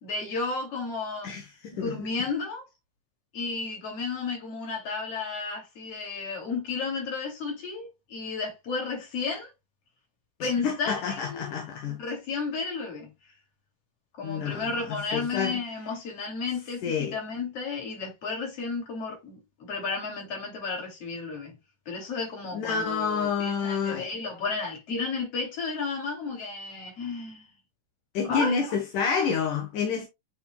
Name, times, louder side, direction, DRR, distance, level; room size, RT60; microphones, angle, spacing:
voice 1, 0.0-1.3 1.7-2.6 3.3-9.5 10.4-11.5 11.9-13.1 14.2-21.5 21.9-27.5 28.2-28.8, left 4 dB, 50° left, 3.8 m, -33 dB
voice 2, 1.2-2.1 10.4-12.0 14.2-15.6 16.8-17.1 22.5-24.1 28.1-30.1, left 6 dB, 80° left, 2.8 m, -29 dB
9.2 x 4.5 x 2.3 m
omnidirectional pair, 3.6 m